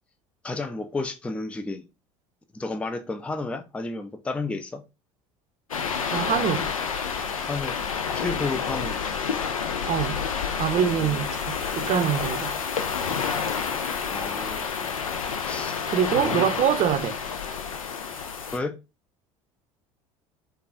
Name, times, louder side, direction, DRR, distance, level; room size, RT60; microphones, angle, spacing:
voice 1, 0.4-1.8 2.5-4.8 7.5-7.8 8.1-9.0 10.8-11.2 14.1-14.9 15.4-15.9 16.2-16.4 18.5-18.8, left 3 dB, 5° left, 0.4 m, -32 dB
sound 1, 5.7-18.6, left 6 dB, 90° left, 0.4 m, -29 dB
voice 2, 6.1-6.6 9.9-10.2 10.6-12.5 15.9-17.1, right 9 dB, 45° right, 0.6 m, -24 dB
4.6 x 2.3 x 2.5 m
hypercardioid pair, 65°, 17 cm